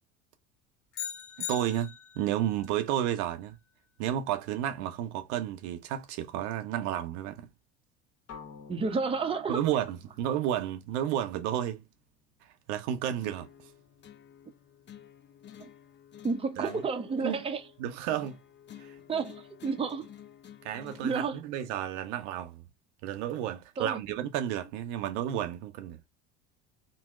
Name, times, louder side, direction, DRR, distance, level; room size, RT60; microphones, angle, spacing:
sound 1, 0.9-2.3, left 10 dB, 80° left, 0.7 m, -39 dB
voice 1, 1.5-3.6 4.0-7.5 9.5-11.8 12.7-13.5 16.6-16.8 17.2-17.5 17.8-18.4 18.8-18.9 20.6-22.6 23.0-26.0, right 11 dB, 70° right, 0.6 m, -32 dB
sound 2, 8.3-12.2, left 5 dB, 55° left, 1.1 m, -52 dB
voice 2, 8.7-9.6 15.6-15.7 16.2-17.6 19.1-20.1 21.0-21.4 23.8-24.0, right 4 dB, 15° right, 0.6 m, -31 dB
sound 3, 13.2-21.2, left 10 dB, 30° left, 0.6 m, -51 dB
3.7 x 2.0 x 2.3 m
hypercardioid pair, 70°, 36 cm